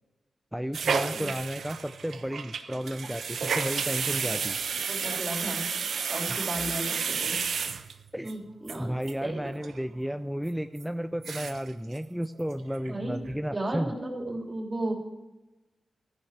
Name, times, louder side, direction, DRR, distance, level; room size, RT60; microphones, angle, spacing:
voice 1, 0.5-4.6 6.3-6.4 8.1-8.3 8.8-13.9, equal, 5° right, 9 dB, 0.4 m, -33 dB
sound 1, 0.7-8.3 8.7-8.8 9.0-9.1 9.4-9.8 10.1-10.2 10.8-10.9 11.1-11.7 12.0-12.1 12.4-12.9 13.2-13.4, right 6 dB, 80° right, 1.0 m, -32 dB
voice 2, 4.9-5.7 6.1-7.4 8.2-8.9 9.2-9.4 12.9-13.2 13.5-14.9, right 1 dB, 30° right, 0 dB, 3.4 m, -34 dB
14.0 x 10.0 x 6.0 m, 1.0 s
wide cardioid pair, 100°, 0 cm